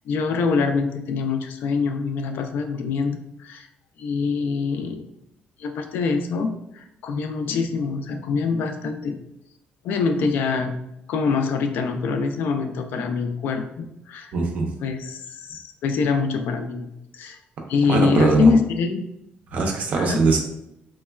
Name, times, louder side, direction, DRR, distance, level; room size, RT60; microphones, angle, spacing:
voice 1, 0.1-3.7 4.0-5.1 5.6-9.1 9.8-10.8 11.1-14.3 14.8-16.9 17.1-17.4 17.7-19.0 20.0-20.2, left 4 dB, 75° left, 6 dB, 0.3 m, -24 dB
voice 2, 14.3-14.7 17.9-18.5 19.5-20.4, right 4 dB, 50° right, 2 dB, 0.5 m, -21 dB
3.1 x 2.1 x 2.2 m, 0.83 s
cardioid pair, 165°, 3 cm